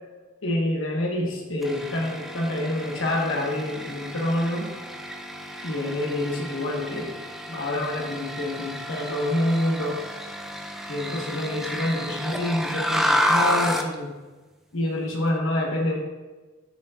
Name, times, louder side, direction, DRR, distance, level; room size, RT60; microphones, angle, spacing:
voice 1, 0.4-4.7 5.6-7.1 7.5-10.0 10.9-14.1 14.7-16.0, left 1 dB, 65° left, 0 dB, 1.3 m, -27 dB
sound 1, 1.6-13.9, equal, ahead, 0.4 m, -30 dB
14.0 x 5.2 x 2.4 m, 1.3 s
head